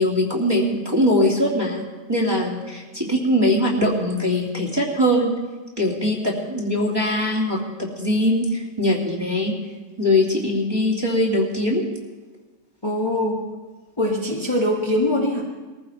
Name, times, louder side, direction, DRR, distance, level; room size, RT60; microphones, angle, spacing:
voice 1, 0.0-1.8 2.1-5.3 5.8-9.5 10.0-11.8, left 1 dB, 15° right, -3 dB, 2.8 m, -21 dB
voice 2, 12.8-13.4 14.0-15.4, left 1 dB, 20° left, -3 dB, 1.7 m, -22 dB
21.0 x 15.0 x 4.5 m, 1.2 s
omnidirectional pair, 1.5 m